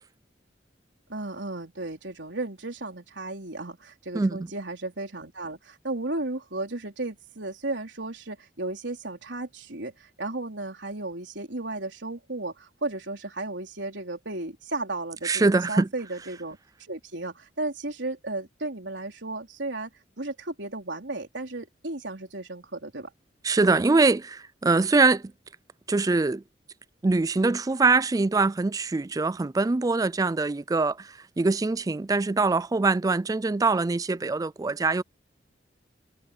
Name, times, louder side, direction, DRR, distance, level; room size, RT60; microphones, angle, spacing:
voice 1, 1.1-16.6 16.9-19.9 20.2-23.1, right 2 dB, 85° right, 3.9 m, -34 dB
voice 2, 4.1-4.5 15.2-15.9 23.4-25.2 25.9-26.4 27.0-35.0, right 3 dB, 20° right, 0.4 m, -23 dB
head